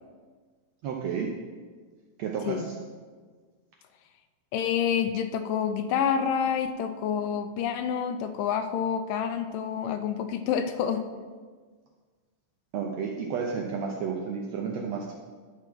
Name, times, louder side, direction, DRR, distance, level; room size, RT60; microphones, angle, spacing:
voice 1, 0.8-1.3 2.2-2.7 12.7-15.1, right 6 dB, 75° right, 0 dB, 1.6 m, -31 dB
voice 2, 4.5-11.1, left 8 dB, 80° left, 9 dB, 2.1 m, -28 dB
11.5 x 4.6 x 6.1 m, 1.5 s
omnidirectional pair, 3.9 m